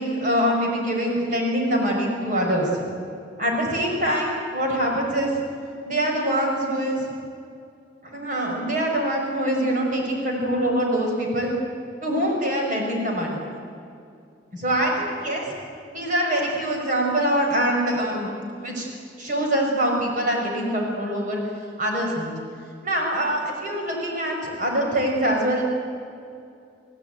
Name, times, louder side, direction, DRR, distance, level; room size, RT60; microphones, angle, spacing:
voice 1, 0.0-2.7 3.4-5.3 5.9-7.0 8.0-11.5 12.0-13.4 14.5-15.4 15.9-18.3 18.6-18.9 19.2-21.4 21.8-22.4 22.8-25.6, right 1 dB, 45° right, 0 dB, 5.7 m, -24 dB
29.0 x 17.0 x 9.3 m, 2.5 s
head